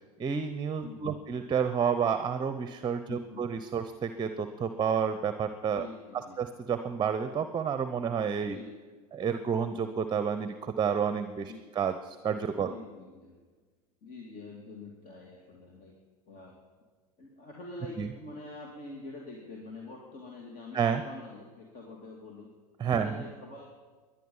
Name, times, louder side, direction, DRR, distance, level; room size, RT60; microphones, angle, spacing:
voice 1, 0.2-5.9 6.4-8.6 9.1-12.7 18.0-18.1 20.7-21.0 22.8-23.2, right 7 dB, 20° right, 10 dB, 0.8 m, -30 dB
voice 2, 0.8-1.2 3.1-3.5 5.7-6.4 8.5-8.7 11.4-11.7 12.7-13.5 14.0-15.9 16.3-16.6 17.2-22.5 22.9-23.7, left 2 dB, 45° left, -1 dB, 2.7 m, -46 dB
21.5 x 10.5 x 5.6 m, 1.4 s
hypercardioid pair, 85°, 20 cm